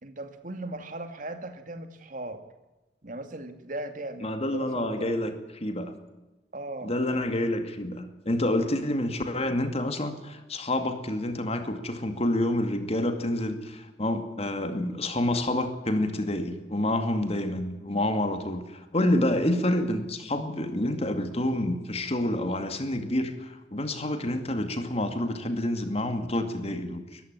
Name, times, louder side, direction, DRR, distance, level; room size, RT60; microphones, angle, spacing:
voice 1, 0.0-2.4 3.0-5.2 6.5-6.9, right 2 dB, 50° right, 8 dB, 2.5 m, -38 dB
voice 2, 4.2-5.3 5.6-5.9 6.8-27.2, left 1 dB, 35° left, 7 dB, 2.3 m, -28 dB
22.0 x 14.5 x 9.0 m, 1.1 s
head